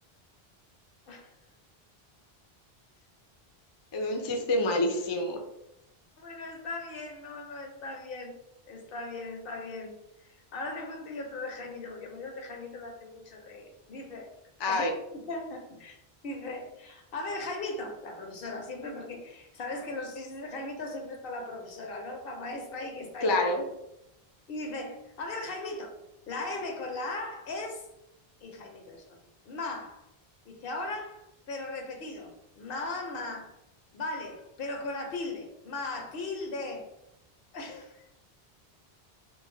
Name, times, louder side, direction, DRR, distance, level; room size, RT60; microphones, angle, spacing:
voice 1, 3.9-5.4 14.6-14.9 23.2-23.6, left 2 dB, 40° left, 3 dB, 0.4 m, -27 dB
voice 2, 6.2-8.4 8.7-10.0 10.5-14.3 14.6-14.8 15.1-23.4 24.5-25.9 26.3-27.8 28.4-29.2 29.5-30.0 30.5-31.2 31.5-33.5 33.9-36.9 37.5-38.0, left 2 dB, 65° left, 3 dB, 0.8 m, -38 dB
3.1 x 2.1 x 3.8 m, 0.84 s
omnidirectional pair, 1.0 m